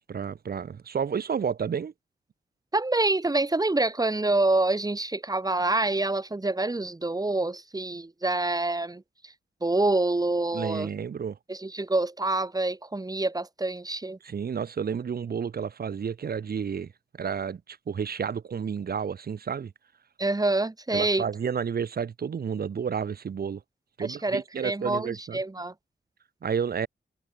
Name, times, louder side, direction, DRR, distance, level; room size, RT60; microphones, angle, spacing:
voice 1, 0.1-1.9 10.5-11.4 14.2-16.9 17.2-19.7 20.9-23.6 24.0-25.4 26.4-26.9, right 7 dB, 50° right, 0.6 m, -31 dB
voice 2, 2.7-9.0 9.6-10.9 11.5-14.2 20.2-21.2 24.0-25.7, right 2 dB, 20° right, 1.2 m, -26 dB
wide cardioid pair, 120°, 20 cm